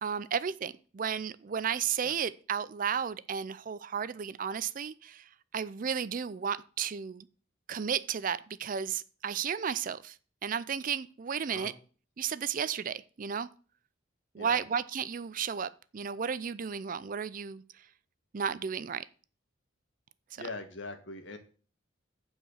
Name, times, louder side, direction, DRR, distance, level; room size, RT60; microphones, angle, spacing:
voice 1, 0.0-7.3 7.7-10.2 10.4-11.7 12.2-13.5 14.3-17.6 18.3-19.0, right 7 dB, 45° right, 0.4 m, -33 dB
voice 2, 20.4-21.4, left 2 dB, 65° left, 1.6 m, -41 dB
8.7 x 4.9 x 6.5 m
head